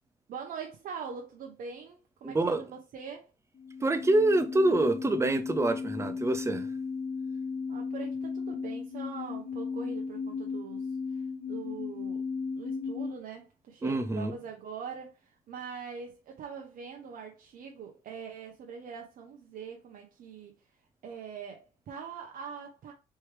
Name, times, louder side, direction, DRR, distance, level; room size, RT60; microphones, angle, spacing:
voice 1, 0.3-3.3 7.7-12.2 12.6-20.5 21.0-22.9, right 6 dB, 55° right, 0.8 m, -43 dB
voice 2, 2.2-2.6 3.8-6.7 13.8-14.3, right 2 dB, 15° right, 0.6 m, -26 dB
sound 1, 3.6-13.2, left 5 dB, 40° left, 0.8 m, -35 dB
4.5 x 3.4 x 3.2 m
cardioid pair, 110°, 17 cm